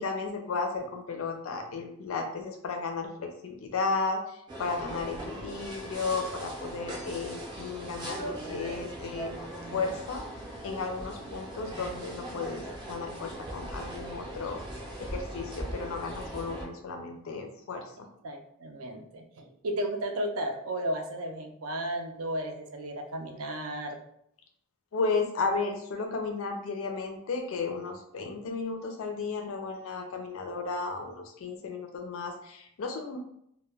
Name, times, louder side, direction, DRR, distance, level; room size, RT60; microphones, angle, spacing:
voice 1, 0.0-9.3 9.7-10.2 10.6-14.6 15.0-18.1 24.9-33.2, left 4 dB, 70° left, 3 dB, 0.4 m, -34 dB
sound 1, 4.5-16.6, right 1 dB, 20° right, 0.5 m, -40 dB
voice 2, 18.2-24.0, right 1 dB, 75° right, 4 dB, 0.4 m, -34 dB
2.1 x 2.1 x 3.3 m, 0.73 s
head